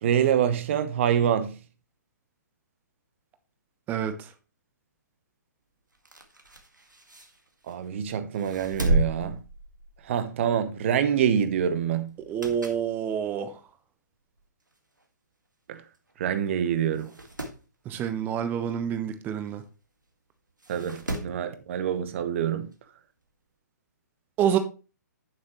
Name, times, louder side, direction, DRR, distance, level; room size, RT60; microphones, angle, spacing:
voice 1, 0.0-1.6 7.7-9.4 10.1-12.1 15.7-15.8 16.2-17.1 20.7-22.7, right 9 dB, 40° right, 1.0 m, -26 dB
voice 2, 3.9-4.3 12.3-13.6 17.8-19.6 24.4-24.6, right 9 dB, 20° right, 0.8 m, -27 dB
sound 1, 5.9-7.9 8.3-10.2 10.6-10.8 12.1-12.9 13.4-13.5 14.4-14.5 14.7-14.8 15.0-15.1 15.9-16.1 16.4-16.5 16.9-17.6 19.5-19.6 20.6-21.4 22.7-22.8, right 1 dB, 80° right, 1.9 m, -32 dB
8.8 x 7.5 x 3.1 m
figure-of-eight pair, 125°, 10 cm